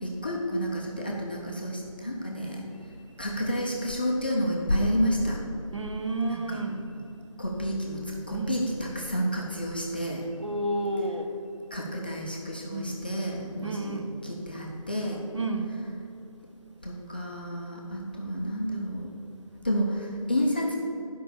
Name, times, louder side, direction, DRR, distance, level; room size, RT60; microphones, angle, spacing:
voice 1, 0.0-2.6 3.2-5.4 6.3-6.6 7.4-8.0 8.3-10.3 11.7-15.2 16.8-19.1 19.6-20.8, equal, 15° left, -4 dB, 0.6 m, -30 dB
voice 2, 5.7-6.8 8.3-8.6 10.4-11.3 12.7-13.0 13.6-14.2 15.3-15.7, right 2 dB, 55° right, 5 dB, 1.1 m, -31 dB
10.5 x 5.4 x 7.0 m, 2.7 s
figure-of-eight pair, 170°, 18 cm